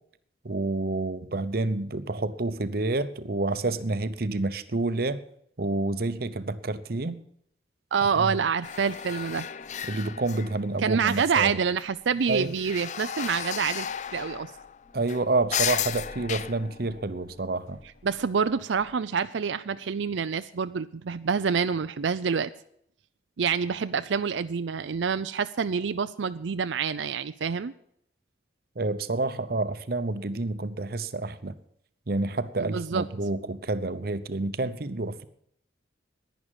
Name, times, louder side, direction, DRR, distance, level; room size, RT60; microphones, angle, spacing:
voice 1, 0.4-5.2 5.6-7.2 8.2-8.3 9.9-11.5 12.3-12.5 14.9-17.8 28.8-31.5 32.1-35.2, right 2 dB, 55° right, 13 dB, 0.8 m, -29 dB
voice 2, 7.9-9.5 10.8-13.9 14.1-14.5 18.0-22.5 23.4-27.7 32.6-33.1, right 6 dB, 85° right, 11 dB, 0.5 m, -27 dB
sound 1, 8.6-10.8 11.1-11.8 12.2-18.2 18.8-18.9, left 9 dB, 40° left, 0.4 m, -35 dB
11.5 x 10.0 x 9.0 m, 0.70 s
head